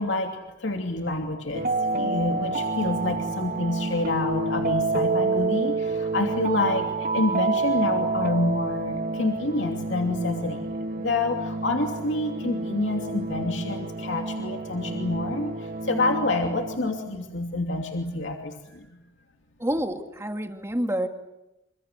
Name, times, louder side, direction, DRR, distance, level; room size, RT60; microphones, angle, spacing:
voice 1, 0.0-6.9 7.1-18.9, left 2 dB, 70° left, 3 dB, 2.8 m, -28 dB
sound 1, 1.5-17.3, right 3 dB, 45° right, 2.0 m, -29 dB
voice 2, 19.6-21.1, right 1 dB, 15° right, 6 dB, 2.0 m, -28 dB
28.0 x 26.0 x 8.1 m, 0.94 s
head